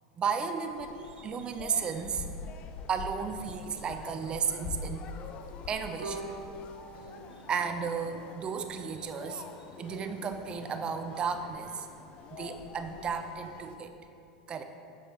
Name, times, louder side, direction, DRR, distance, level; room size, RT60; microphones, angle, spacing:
voice 1, 0.2-2.3 2.9-5.0 5.7-6.2 7.5-9.4 9.8-11.9 12.3-13.9 14.5-14.6, right 6 dB, 30° right, 7 dB, 0.5 m, -34 dB
sound 1, 0.7-13.8, left 4 dB, 40° left, 0.5 m, -45 dB
Bowed string instrument, 6.0-9.1, right 2 dB, 85° right, 1.2 m, -44 dB
8.6 x 6.2 x 3.0 m, 2.5 s
figure-of-eight pair, 85°, 3 cm